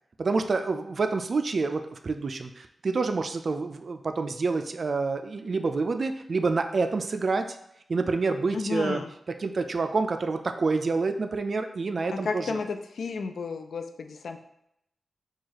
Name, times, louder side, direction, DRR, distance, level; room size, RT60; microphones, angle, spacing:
voice 1, 0.2-7.5 7.9-9.0 9.4-12.6, right 3 dB, 60° right, 7 dB, 0.3 m, -27 dB
voice 2, 8.5-9.1 12.1-14.4, left 4 dB, 85° left, 6 dB, 0.3 m, -32 dB
4.5 x 2.3 x 2.9 m, 0.78 s
cardioid pair, 60°, 0 cm